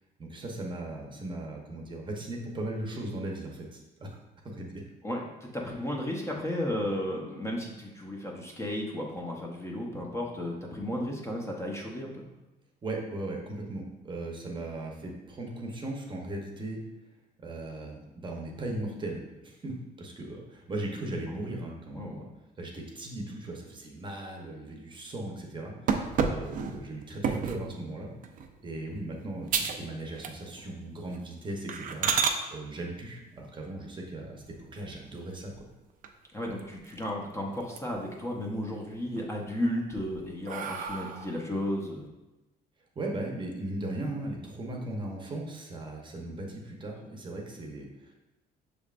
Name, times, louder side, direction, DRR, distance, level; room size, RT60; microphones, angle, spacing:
voice 1, 0.2-4.1 4.4-4.8 12.8-16.8 17.4-22.3 22.6-28.1 28.6-35.7 42.9-48.1, right 1 dB, 30° right, -1 dB, 0.8 m, -38 dB
voice 2, 5.0-12.2 21.3-21.4 21.9-22.2 36.3-42.1, left 1 dB, 15° left, -1 dB, 0.8 m, -34 dB
sound 1, 25.9-27.7 28.2-28.5 29.0-29.1 29.5-29.9 30.2-30.7 31.0-31.2 31.7-32.4 34.4-35.1 35.5-35.6 36.0-36.1 36.4-37.2 37.6-38.2 38.6-39.2 39.7-41.5, right 6 dB, 55° right, 0.5 m, -31 dB
6.3 x 3.4 x 2.5 m, 1.0 s
cardioid pair, 110°, 17 cm